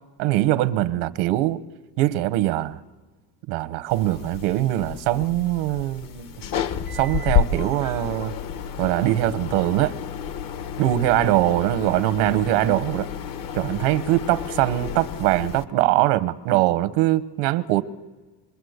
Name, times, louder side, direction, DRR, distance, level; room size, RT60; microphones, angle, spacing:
voice 1, 0.2-1.6 2.0-2.8 3.5-6.3 6.9-8.3 8.8-9.9 10.8-13.1 13.5-17.8, right 15 dB, 85° right, 1.1 m, -22 dB
sound 1, 3.9-15.6, left 8 dB, 45° left, 1.1 m, -30 dB
26.5 x 23.5 x 8.0 m
cardioid pair, 155°, 47 cm